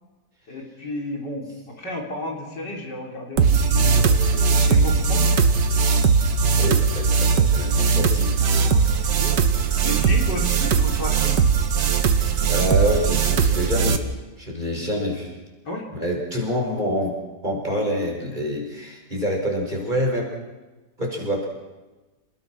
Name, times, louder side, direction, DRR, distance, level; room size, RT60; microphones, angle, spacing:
voice 1, 0.5-5.3 8.5-9.4 9.7-11.4 15.7-15.8, left 2 dB, 75° left, 0 dB, 4.4 m, -33 dB
sound 1, 3.4-14.0, right 5 dB, 80° right, 2.0 m, -19 dB
voice 2, 6.6-8.3 8.9-9.1 11.9-14.1 14.4-15.4 15.9-20.4 21.0-21.5, equal, 25° right, -1 dB, 5.6 m, -27 dB
29.0 x 20.0 x 6.1 m, 1.2 s
omnidirectional pair, 1.9 m